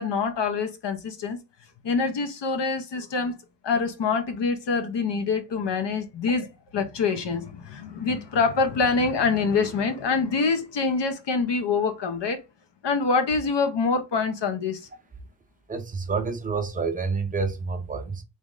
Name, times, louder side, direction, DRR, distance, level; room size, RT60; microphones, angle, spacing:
voice 1, 0.0-1.4 1.8-3.4 3.6-12.4 12.8-14.8, left 4 dB, 60° left, 0.8 m, -25 dB
voice 2, 15.7-18.2, right 4 dB, 20° right, 0.6 m, -28 dB
3.9 x 3.1 x 3.7 m
wide cardioid pair, 165°, 48 cm